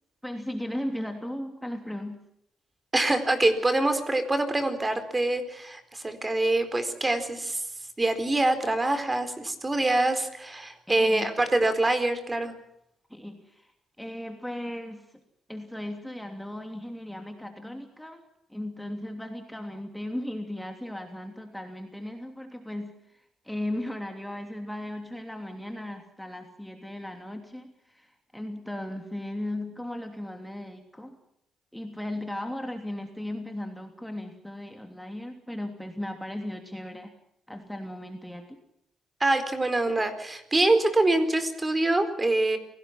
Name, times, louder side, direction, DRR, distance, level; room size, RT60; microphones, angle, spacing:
voice 1, 0.2-2.2 10.9-11.3 13.1-13.7 14.0-15.1 15.5-31.2 31.7-37.1 37.5-38.6, left 1 dB, 5° left, 4 dB, 3.0 m, -36 dB
voice 2, 2.9-7.6 8.0-12.5 39.2-42.6, right 2 dB, 20° right, 9 dB, 4.3 m, -25 dB
27.5 x 18.5 x 6.1 m, 0.76 s
cardioid pair, 90°, 0 cm